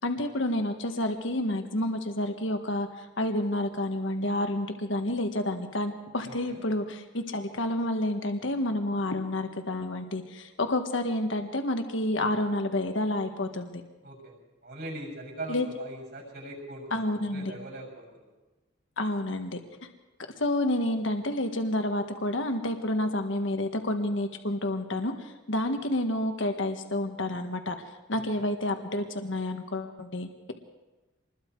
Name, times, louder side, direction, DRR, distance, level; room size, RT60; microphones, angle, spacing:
voice 1, 0.0-13.8 15.5-15.7 16.9-17.5 19.0-19.6 20.4-27.7 28.1-30.5, left 1 dB, 65° left, 6 dB, 1.5 m, -29 dB
voice 2, 6.2-6.6 14.0-14.3 14.6-17.0 17.3-18.3 28.1-28.5, right 1 dB, 50° right, 0 dB, 7.2 m, -41 dB
26.5 x 21.0 x 4.7 m, 1.1 s
head